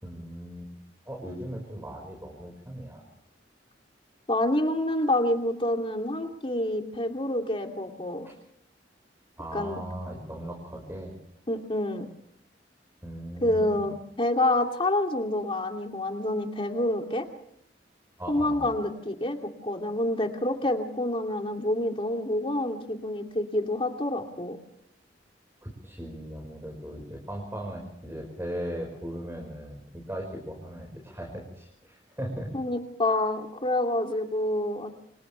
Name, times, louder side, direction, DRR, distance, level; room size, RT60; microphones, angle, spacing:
voice 1, 0.0-0.7 1.1-3.0 8.3-8.4 9.4-11.1 13.0-13.9 18.2-18.7 25.6-32.5, right 1 dB, 15° right, 0 dB, 5.3 m, -38 dB
voice 2, 4.3-8.3 9.5-9.8 11.5-12.1 13.4-17.3 18.3-24.6 32.5-34.9, left 1 dB, 30° left, 3 dB, 2.8 m, -27 dB
29.0 x 26.5 x 3.4 m, 0.71 s
head